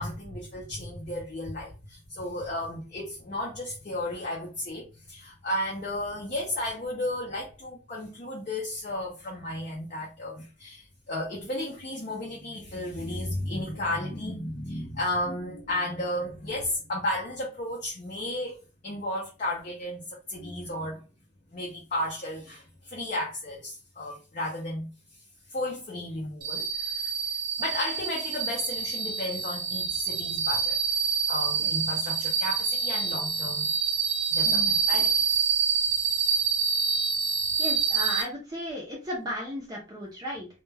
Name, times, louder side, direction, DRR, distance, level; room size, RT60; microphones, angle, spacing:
voice 1, 0.0-21.0 21.5-24.9 25.5-27.1 27.6-30.8 31.3-33.7 34.3-35.2, left 1 dB, 35° left, 0.5 m, -33 dB
sound 1, 26.4-38.2, right 6 dB, 90° right, 0.6 m, -27 dB
voice 2, 34.4-34.8 37.6-40.5, equal, 15° right, 0.5 m, -35 dB
2.2 x 2.2 x 3.2 m
head